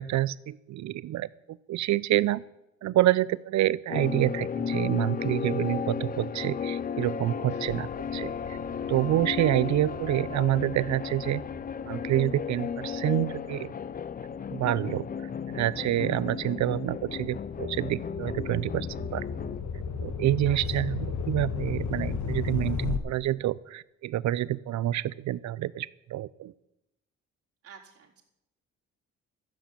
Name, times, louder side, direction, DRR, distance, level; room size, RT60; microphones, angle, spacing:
voice 1, 0.0-2.4 2.8-8.6 8.9-11.4 11.8-13.7 14.5-15.1 15.5-19.2 20.0-26.5, right 14 dB, 65° right, 20 dB, 0.6 m, -28 dB
sound 1, 3.9-19.6, left 7 dB, 30° left, 0.5 m, -34 dB
voice 2, 7.5-7.8 20.5-20.7 27.6-28.2, right 7 dB, 50° right, -5 dB, 3.9 m, -51 dB
sound 2, 7.7-14.4 15.0-23.0, left 5 dB, 70° left, 1.5 m, -36 dB
12.5 x 8.2 x 8.6 m, 0.88 s
cardioid pair, 90°, 30 cm